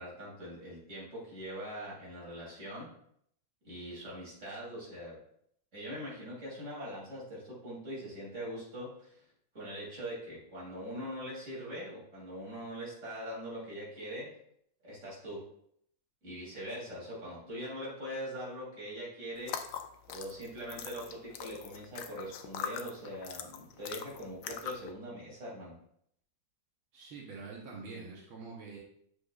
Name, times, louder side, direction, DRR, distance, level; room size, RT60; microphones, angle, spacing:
voice 1, 0.0-2.9 3.6-5.2 5.7-9.2 9.5-14.4 14.8-15.5 16.2-19.6 20.1-25.7, equal, 35° right, -6 dB, 3.5 m, -42 dB
sound 1, 19.4-24.9, left 8 dB, 70° left, 1.1 m, -42 dB
voice 2, 26.9-28.8, right 4 dB, 85° right, -3 dB, 2.0 m, -45 dB
8.2 x 5.9 x 2.5 m, 0.68 s
omnidirectional pair, 2.2 m